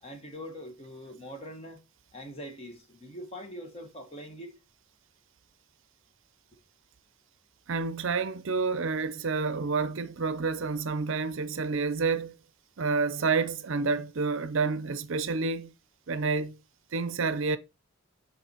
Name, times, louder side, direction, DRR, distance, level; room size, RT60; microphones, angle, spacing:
voice 1, 0.0-1.8 2.1-4.6, equal, 25° left, 1.3 m, -43 dB
voice 2, 7.7-12.4 12.8-15.7 16.1-16.6 16.9-17.6, right 4 dB, 60° right, 0.5 m, -29 dB
6.8 x 4.2 x 4.4 m
head